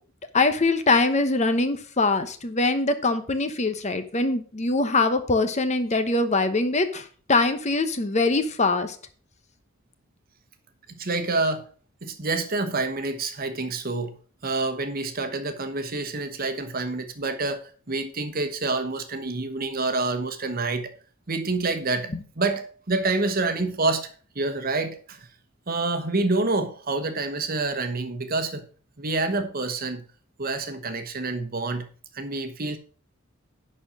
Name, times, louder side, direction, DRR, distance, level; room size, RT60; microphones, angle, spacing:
voice 1, 0.3-9.0, left 3 dB, 35° left, 9 dB, 0.9 m, -23 dB
voice 2, 10.9-11.7 12.0-14.2 14.4-20.9 21.3-22.1 22.4-25.3 25.7-28.6 29.0-30.0 30.4-31.9 32.1-32.8, right 3 dB, 45° right, 9 dB, 1.2 m, -27 dB
10.5 x 4.4 x 6.0 m, 0.41 s
head